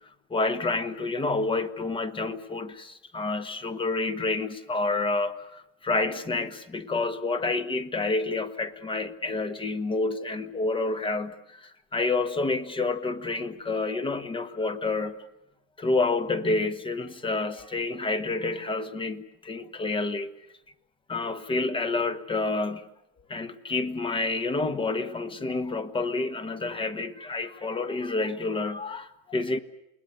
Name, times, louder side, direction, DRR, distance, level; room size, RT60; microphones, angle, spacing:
voice 1, 0.3-15.2 15.8-20.4 21.1-22.8 23.3-29.6, left 3 dB, 15° left, 1.3 m, -29 dB
28.5 x 20.5 x 8.1 m
hypercardioid pair, 120°, 35 cm